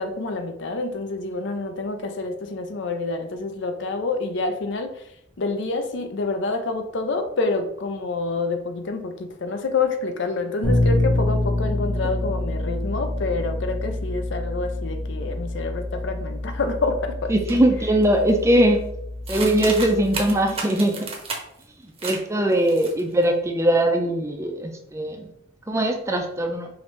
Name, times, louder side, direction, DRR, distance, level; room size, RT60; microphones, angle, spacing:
voice 1, 0.0-5.0 5.4-17.6, left 3 dB, 60° left, 7 dB, 0.5 m, -27 dB
Bass guitar, 10.6-20.4, left 1 dB, 30° left, 1.3 m, -27 dB
voice 2, 17.3-18.9 19.3-21.1 22.0-25.3 25.7-26.7, right 1 dB, 15° right, 4 dB, 0.4 m, -21 dB
sound 1, 17.5-17.6 18.0-18.4 19.3-21.6 22.0-22.2 22.5-23.2, right 4 dB, 30° right, 0.8 m, -32 dB
4.9 x 2.6 x 3.1 m, 0.73 s
head